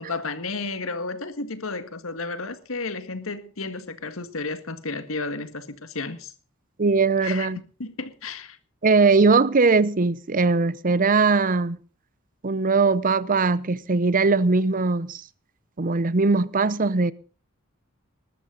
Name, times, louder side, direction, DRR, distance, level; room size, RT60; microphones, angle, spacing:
voice 1, 0.0-6.3 7.2-7.5 7.8-8.6, left 3 dB, 80° left, 1.8 m, -32 dB
voice 2, 6.8-7.6 8.8-11.8 12.4-15.2 15.8-17.1, right 4 dB, 40° right, 0.7 m, -20 dB
20.0 x 13.0 x 4.0 m
head